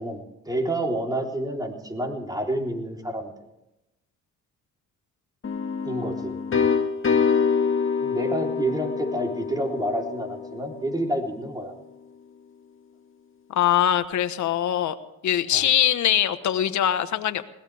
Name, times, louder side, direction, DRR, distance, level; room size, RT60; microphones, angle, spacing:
voice 1, 0.0-3.3 5.8-6.4 8.0-11.7 15.5-15.7, right 1 dB, 15° right, 2 dB, 3.7 m, -29 dB
sound 1, 5.4-11.1, left 6 dB, 45° left, 2.0 m, -26 dB
voice 2, 13.5-14.9 15.2-17.5, left 11 dB, 70° left, 11 dB, 1.3 m, -22 dB
21.0 x 18.0 x 3.5 m, 0.91 s
cardioid pair, 90°, 30 cm